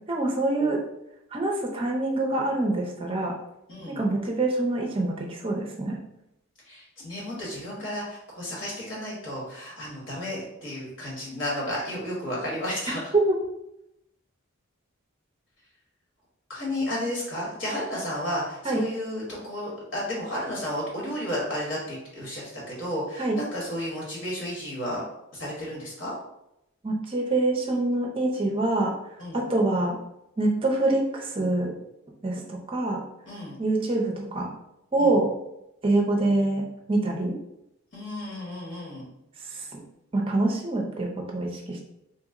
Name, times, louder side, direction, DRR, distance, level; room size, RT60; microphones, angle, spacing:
voice 1, 0.1-0.8 1.3-3.3 3.9-6.0 13.1-13.2 18.6-18.8 23.2-23.4 26.8-28.9 29.3-30.0 30.4-31.7 32.2-33.0 33.6-34.5 34.9-35.3 35.8-36.6 36.9-37.4 39.5-39.8 40.1-41.8, right 2 dB, 25° right, 0 dB, 0.5 m, -25 dB
voice 2, 3.7-4.0 6.6-13.1 16.5-25.0 25.3-26.1 29.2-29.4 33.2-33.6 35.0-35.1 37.9-39.0, left 1 dB, 60° left, -5 dB, 1.3 m, -32 dB
2.9 x 2.0 x 3.6 m, 0.84 s
head